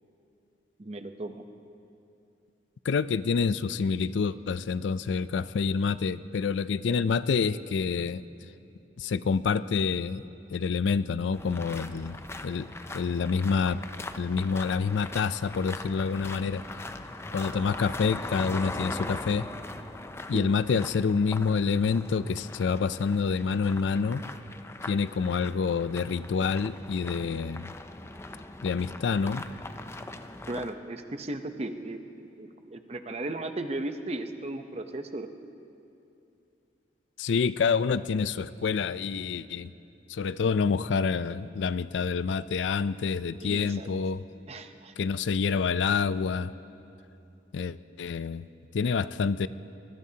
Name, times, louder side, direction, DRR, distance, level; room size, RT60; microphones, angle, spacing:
voice 1, 0.8-1.4 20.3-20.5 30.5-35.3 43.4-43.9 44.5-44.9, right 2 dB, 35° right, 7 dB, 0.7 m, -36 dB
voice 2, 2.8-8.2 9.0-10.2 10.5-12.2 12.4-13.8 14.2-16.6 17.3-19.5 20.3-24.2 24.9-27.7 28.6-29.4 37.2-39.7 40.1-44.2 45.0-46.5 47.5-48.5 48.7-49.5, left 5 dB, 80° left, 15 dB, 0.4 m, -27 dB
sound 1, 11.3-30.7, left 2 dB, 15° left, 0.5 m, -41 dB
24.0 x 21.0 x 2.8 m, 2.7 s
head